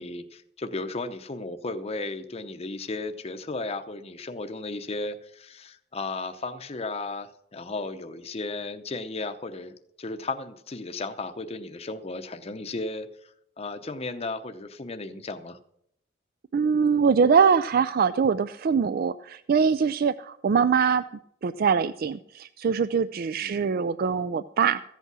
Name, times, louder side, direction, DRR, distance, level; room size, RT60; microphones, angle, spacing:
voice 1, 0.0-13.3 13.6-15.6 23.4-23.6, left 3 dB, 35° left, 7 dB, 0.7 m, -35 dB
voice 2, 16.5-21.0 21.4-24.8, right 6 dB, 50° right, 14 dB, 0.4 m, -23 dB
14.5 x 8.2 x 6.1 m, 0.74 s
head